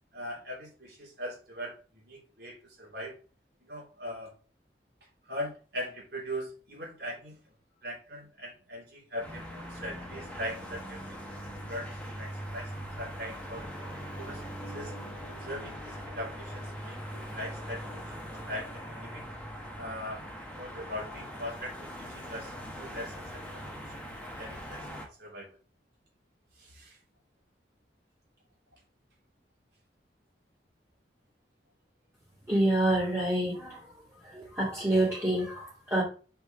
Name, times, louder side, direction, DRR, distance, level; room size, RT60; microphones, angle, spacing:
voice 1, 0.1-3.1 3.6-4.3 5.2-7.4 7.8-11.2 11.7-11.9 12.2-13.7 14.2-14.9 15.2-19.2 19.8-20.2 20.5-24.0 24.4-25.5 26.6-27.0, equal, 60° right, -3 dB, 3.2 m, -41 dB
sound 1, 9.2-25.0, equal, 5° left, 1.4 m, -41 dB
voice 2, 32.5-33.8 34.2-36.0, right 1 dB, 15° right, -9 dB, 2.3 m, -27 dB
5.6 x 4.5 x 5.1 m, 0.37 s
head